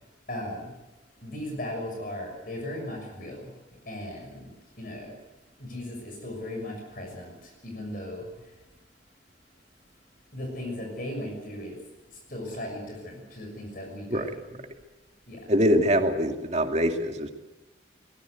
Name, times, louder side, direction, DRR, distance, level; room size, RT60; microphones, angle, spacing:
voice 1, 0.3-0.7 1.2-3.5 3.9-4.5 4.8-5.1 5.6-7.3 7.6-8.2 10.3-11.8 12.3-14.6 15.3-15.4, left 1 dB, 45° left, 2 dB, 6.4 m, -37 dB
voice 2, 15.5-17.3, equal, 35° right, 4 dB, 2.4 m, -23 dB
22.5 x 20.0 x 8.1 m, 1.0 s
head